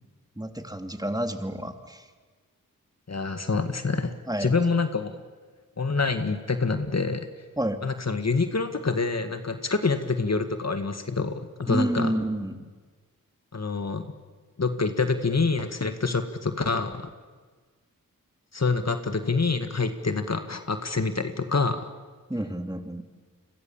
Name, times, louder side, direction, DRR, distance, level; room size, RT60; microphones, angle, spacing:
voice 1, 0.4-2.0 4.3-4.5 7.6-7.8 11.7-12.6 22.3-23.0, right 1 dB, 10° right, 6 dB, 2.6 m, -29 dB
voice 2, 3.1-4.1 4.4-5.1 5.8-7.3 7.8-12.1 13.5-14.0 14.6-17.1 18.5-21.9, left 4 dB, 50° left, 8 dB, 1.9 m, -26 dB
30.0 x 22.5 x 7.3 m, 1.4 s
cardioid pair, 45°, 35 cm